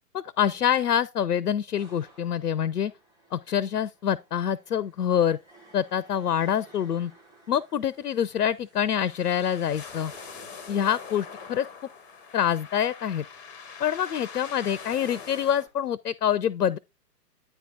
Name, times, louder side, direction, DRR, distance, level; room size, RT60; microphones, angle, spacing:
voice 1, 0.1-2.9 3.3-5.4 5.7-7.1 7.5-10.1 10.7-11.7 12.3-13.2 13.8-16.8, left 9 dB, 70° left, 0.6 m, -26 dB
sound 1, 1.8-15.7, right 2 dB, 10° right, 1.3 m, -57 dB
sound 2, 9.0-15.6, left 6 dB, 10° left, 0.7 m, -43 dB
9.3 x 3.6 x 4.7 m
figure-of-eight pair, 125°, 49 cm